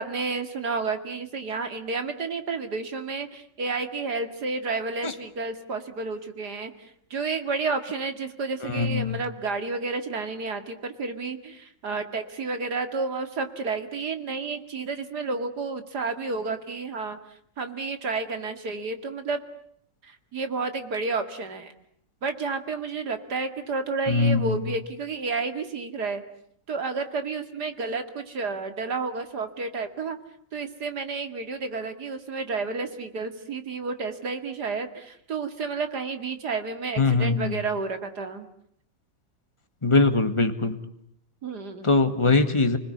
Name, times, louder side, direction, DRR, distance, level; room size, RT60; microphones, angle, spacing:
voice 1, 0.0-17.2 17.6-19.4 20.0-21.7 22.2-26.2 26.7-30.2 30.5-38.5 41.4-42.0, right 4 dB, 65° right, 8 dB, 2.8 m, -31 dB
voice 2, 8.6-9.2 24.1-24.6 37.0-37.6 39.8-40.8 41.8-42.8, left 3 dB, 15° left, 8 dB, 2.0 m, -22 dB
30.0 x 20.5 x 9.6 m, 0.70 s
omnidirectional pair, 1.9 m